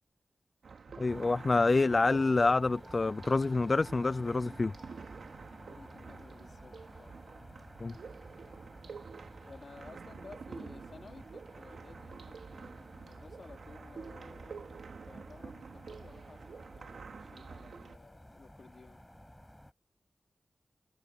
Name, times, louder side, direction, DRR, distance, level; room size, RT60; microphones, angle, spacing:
sound 1, 0.6-18.0, right 5 dB, 85° right, 2.6 m, -49 dB
voice 1, 1.0-4.7 7.8-8.0, left 3 dB, 40° left, 0.3 m, -27 dB
sound 2, 1.1-19.7, left 1 dB, 5° left, 6.8 m, -54 dB
voice 2, 5.6-7.1 9.5-19.0, left 4 dB, 60° left, 2.6 m, -55 dB
wide cardioid pair, 100°, 0 cm